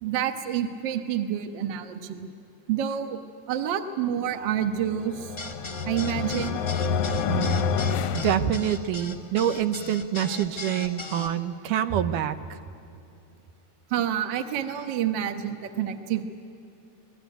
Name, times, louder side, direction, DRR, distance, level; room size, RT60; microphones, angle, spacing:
voice 1, 0.0-2.3 2.7-3.2 3.5-5.3 5.8-6.6 13.9-16.2, right 10 dB, 55° right, 7 dB, 1.3 m, -28 dB
sound 1, 4.8-9.1, left 6 dB, 70° left, 1.5 m, -28 dB
sound 2, 5.4-11.3, left 2 dB, 20° left, 1.2 m, -38 dB
voice 2, 7.3-7.7 8.1-12.6, right 10 dB, 85° right, 10 dB, 2.4 m, -26 dB
25.0 x 20.5 x 9.1 m, 2.7 s
omnidirectional pair, 3.7 m